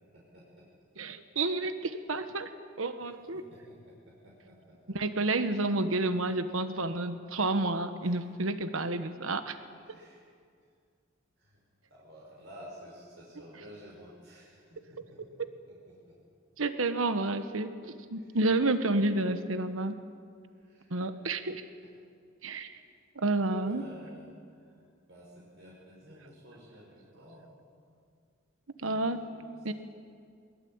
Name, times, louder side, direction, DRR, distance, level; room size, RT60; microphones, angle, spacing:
voice 1, 0.1-0.6 3.0-3.1 3.3-5.0 8.0-8.3 9.9-10.2 11.4-11.6 11.9-15.4 15.9-16.2 18.2-18.4 20.6-20.9 23.5-24.7 25.1-27.5 28.8-29.7, equal, 65° right, -4 dB, 5.6 m, -52 dB
voice 2, 1.0-2.5 2.8-3.5 4.9-9.6 15.2-15.5 16.6-20.0 20.9-21.6 22.4-22.7 23.1-23.8 28.8-29.2 29.6-29.7, right 2 dB, 80° right, 9 dB, 1.2 m, -30 dB
22.5 x 21.5 x 8.8 m, 2.2 s
head